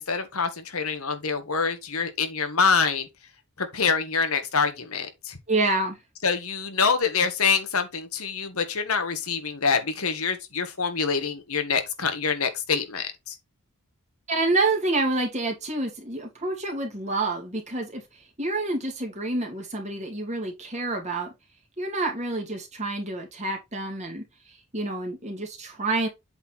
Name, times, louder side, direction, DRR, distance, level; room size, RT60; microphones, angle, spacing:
voice 1, 0.0-3.1 3.6-5.4 6.2-13.4, left 5 dB, 80° left, 1.6 m, -26 dB
voice 2, 5.5-6.0 14.3-18.0 18.4-21.3 21.8-26.1, right 2 dB, 30° right, 2.5 m, -28 dB
8.0 x 4.5 x 4.4 m
head